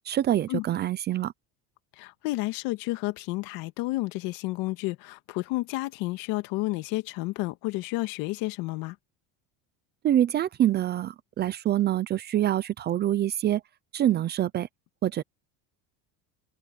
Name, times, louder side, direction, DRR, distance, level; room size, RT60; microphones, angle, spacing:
voice 1, 0.1-1.3 10.0-13.6 13.9-14.7 15.0-15.2, right 12 dB, 25° right, 0.6 m, -25 dB
voice 2, 2.0-9.0, left 20 dB, 65° left, 1.9 m, -31 dB
cardioid pair, 155°, 37 cm